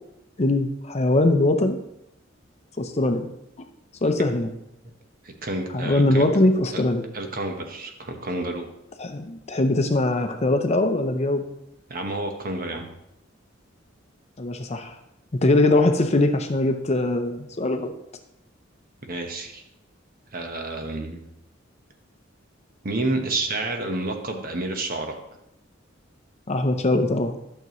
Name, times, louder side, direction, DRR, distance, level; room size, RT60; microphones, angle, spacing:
voice 1, 0.4-1.8 2.8-3.3 4.0-4.5 5.7-7.0 9.0-11.4 14.4-15.0 15.4-17.9 26.5-27.4, left 2 dB, 35° left, 7 dB, 0.6 m, -21 dB
voice 2, 5.2-6.2 7.1-8.7 11.9-12.9 19.1-19.6 20.3-21.2 22.8-25.1, right 2 dB, 45° right, 4 dB, 1.1 m, -29 dB
12.0 x 6.8 x 3.1 m, 0.82 s
head